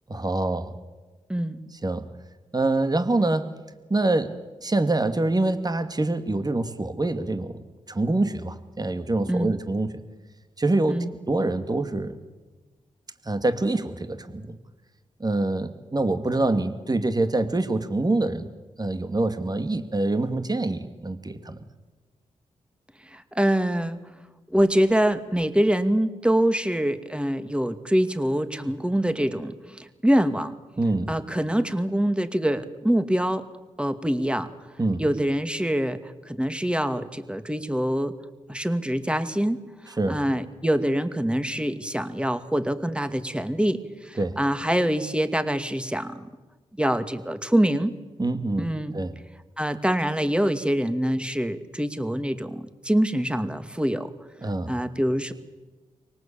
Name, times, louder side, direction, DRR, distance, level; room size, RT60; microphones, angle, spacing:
voice 1, 0.1-0.7 1.8-2.1 2.5-3.5 3.9-4.3 4.6-7.6 7.9-10.0 10.6-12.2 13.2-14.6 15.2-18.5 18.8-21.6 30.8-31.1 34.8-35.1 40.0-40.2 44.2-44.4 48.2-48.7 48.9-49.1 54.4-54.8, right 2 dB, 30° right, 9 dB, 2.3 m, -25 dB
voice 2, 1.3-1.6 9.3-9.5 10.9-11.1 23.1-24.0 24.5-30.5 31.1-33.4 33.8-34.5 35.0-38.1 38.5-39.6 39.8-46.3 46.8-47.9 48.6-48.9 49.6-54.1 54.7-55.3, equal, 10° right, 9 dB, 2.4 m, -25 dB
25.0 x 18.5 x 8.7 m, 1.3 s
supercardioid pair, 40°, 13 cm